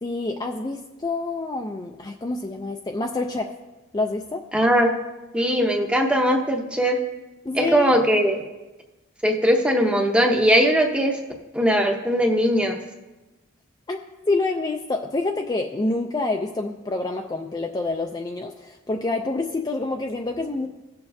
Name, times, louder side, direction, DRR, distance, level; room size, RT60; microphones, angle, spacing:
voice 1, 0.0-3.5 3.9-4.5 7.4-7.9 13.9-14.0 14.3-20.7, left 2 dB, 20° left, 3 dB, 0.3 m, -27 dB
voice 2, 4.5-4.9 5.3-7.0 7.5-8.4 9.2-11.2 11.5-12.8, equal, 5° right, 3 dB, 0.7 m, -20 dB
16.5 x 6.9 x 2.6 m, 1.1 s
head